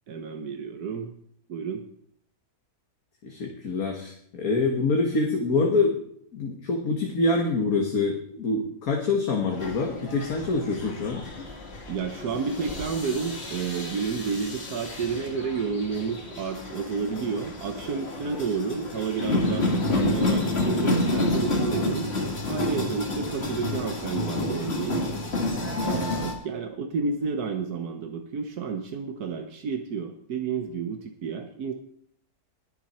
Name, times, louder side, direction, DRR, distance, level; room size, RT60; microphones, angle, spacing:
voice 1, 0.1-1.1 1.5-1.8 11.9-22.1 22.5-25.1 25.8-31.7, right 5 dB, 80° right, 6 dB, 1.5 m, -30 dB
voice 2, 3.2-6.0 6.3-11.2, left 3 dB, 70° left, 1 dB, 1.9 m, -25 dB
sound 1, 9.5-26.3, left 2 dB, 45° left, 2.2 m, -29 dB
20.5 x 7.1 x 4.3 m, 0.65 s
omnidirectional pair, 1.6 m